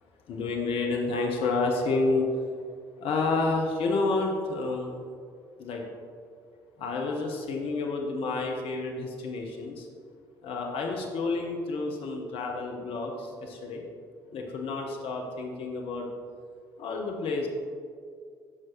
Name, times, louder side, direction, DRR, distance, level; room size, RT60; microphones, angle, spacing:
voice 1, 0.3-2.3 3.0-5.0 5.6-5.8 6.8-9.9 10.4-13.8 14.3-16.1 16.8-17.5, left 3 dB, 55° left, 1 dB, 1.0 m, -29 dB
9.8 x 6.0 x 3.1 m, 2.2 s
figure-of-eight pair, 50°, 11 cm